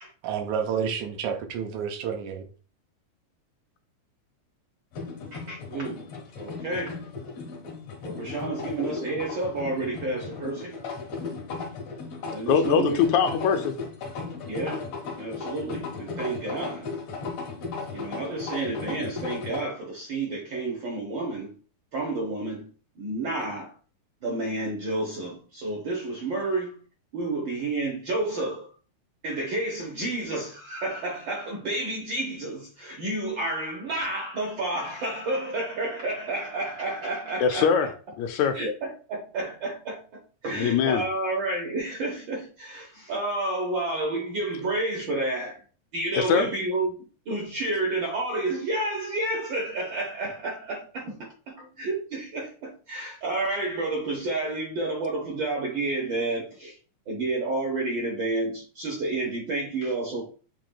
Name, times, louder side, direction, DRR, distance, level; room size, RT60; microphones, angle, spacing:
voice 1, 0.2-2.4, right 7 dB, 80° right, 2.1 m, -29 dB
sound 1, 4.9-19.6, left 4 dB, 65° left, 2.2 m, -36 dB
voice 2, 5.3-6.0 6.4-7.0 8.0-10.8 12.3-13.1 14.5-14.9 15.2-16.9 17.9-21.6 21.9-22.7 23.0-23.7 24.2-26.8 27.1-28.7 29.2-37.9 38.5-45.6 45.9-47.0 47.3-56.8 57.1-60.2, right 2 dB, 60° right, 1.2 m, -30 dB
voice 3, 12.5-13.7 37.4-37.9 38.2-38.6 40.5-41.1 46.2-46.5, left 7 dB, 80° left, 1.9 m, -22 dB
7.5 x 3.1 x 2.2 m
omnidirectional pair, 3.4 m